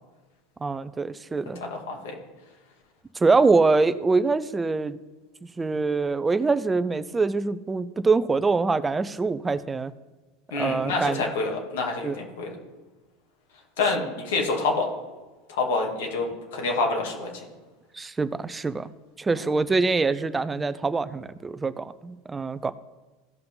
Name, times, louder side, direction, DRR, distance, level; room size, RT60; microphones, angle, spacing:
voice 1, 0.6-1.6 3.2-5.0 5.6-9.9 10.6-11.2 12.0-12.2 18.0-18.9 19.2-22.7, right 3 dB, 15° right, 14 dB, 0.6 m, -24 dB
voice 2, 1.6-2.1 10.5-12.5 13.8-14.9 15.5-17.3 19.3-19.4, left 3 dB, 80° left, 0 dB, 2.5 m, -27 dB
15.5 x 5.7 x 3.9 m, 1.2 s
hypercardioid pair, 95°, 0 cm